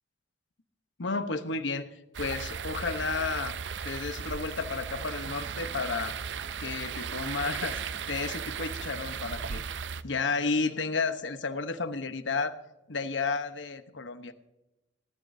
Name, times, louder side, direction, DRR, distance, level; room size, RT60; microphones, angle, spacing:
voice 1, 1.0-1.9 2.2-3.5 3.8-6.2 6.6-7.8 8.1-9.6 10.0-12.6 12.9-14.3, left 4 dB, 85° left, 9 dB, 1.0 m, -32 dB
sound 1, 2.1-10.0, right 6 dB, 70° right, 0.5 m, -36 dB
sound 2, 4.6-9.8, right 2 dB, 30° right, 0.8 m, -50 dB
18.5 x 12.5 x 2.7 m, 0.96 s
head